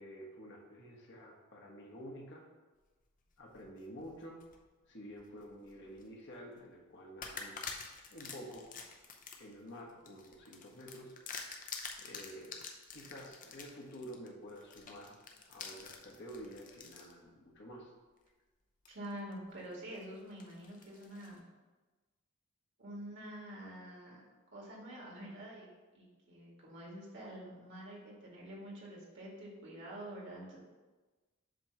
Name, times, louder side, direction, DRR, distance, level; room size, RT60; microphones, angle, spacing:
voice 1, 0.0-2.4 3.4-4.4 4.9-7.8 8.1-8.7 9.3-11.2 12.0-12.6 12.9-15.2 15.5-17.9, equal, 55° left, -1 dB, 1.2 m, -50 dB
Cunching Bark, 3.3-4.6 5.1-6.1 6.5-6.7 7.2-17.1 17.7-17.8 18.8-19.3 19.7-21.4, left 5 dB, 40° left, 0.7 m, -48 dB
voice 2, 18.9-21.4 22.8-24.2 24.5-30.6, right 1 dB, 55° right, -3 dB, 1.9 m, -47 dB
7.5 x 3.0 x 5.8 m, 1.3 s
head